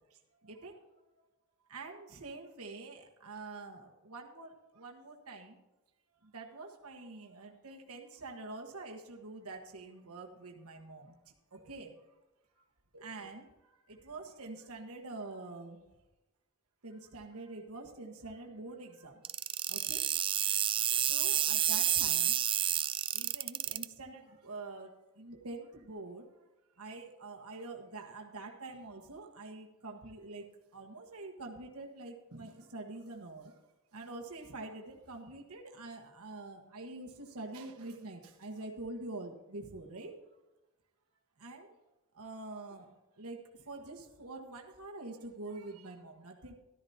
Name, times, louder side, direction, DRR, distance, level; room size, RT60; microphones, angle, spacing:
voice 1, 0.1-1.1 1.7-5.6 6.2-11.2 11.5-12.0 12.9-15.9 16.8-19.2 19.6-20.1 20.4-20.6 21.0-22.7 23.1-26.3 26.8-30.5 30.7-33.5 33.9-40.1 41.4-41.7 42.1-46.5, right 2 dB, 75° right, 1 dB, 1.5 m, -46 dB
sound 1, 19.2-23.8, right 10 dB, 25° right, 0.3 m, -30 dB
13.5 x 12.5 x 2.8 m, 1.0 s
head